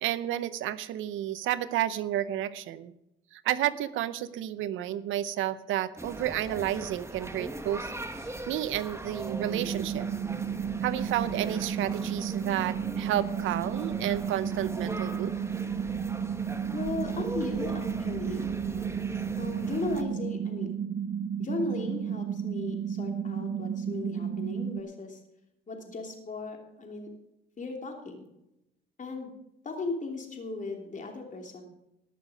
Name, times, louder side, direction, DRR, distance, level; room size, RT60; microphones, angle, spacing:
voice 1, 0.0-2.9 3.3-7.9 8.5-10.1 10.8-15.3, right 12 dB, 85° right, 15 dB, 0.7 m, -31 dB
sound 1, 6.0-20.0, right 2 dB, 15° right, 1.2 m, -40 dB
sound 2, 9.2-24.8, right 7 dB, 45° right, 0.8 m, -33 dB
voice 2, 16.7-18.5 19.4-20.8 21.4-25.2 25.7-27.1 27.6-28.3 29.0-29.3 29.6-31.6, left 3 dB, 40° left, 2 dB, 3.1 m, -36 dB
19.0 x 6.6 x 5.1 m, 0.86 s
cardioid pair, 90°, 20 cm